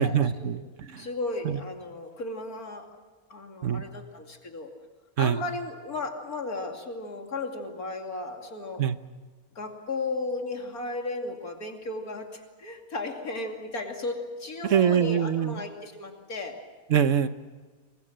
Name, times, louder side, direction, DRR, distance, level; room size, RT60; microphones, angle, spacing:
voice 1, 0.0-1.1 1.4-1.6 3.6-3.8 5.2-5.4 8.8-9.0 14.6-15.6 16.9-17.3, right 8 dB, 60° right, 11 dB, 1.2 m, -24 dB
voice 2, 1.0-2.9 3.3-4.7 5.2-8.8 9.5-16.6, left 2 dB, 80° left, 3 dB, 3.1 m, -35 dB
26.5 x 22.5 x 7.5 m, 1.4 s
omnidirectional pair, 1.5 m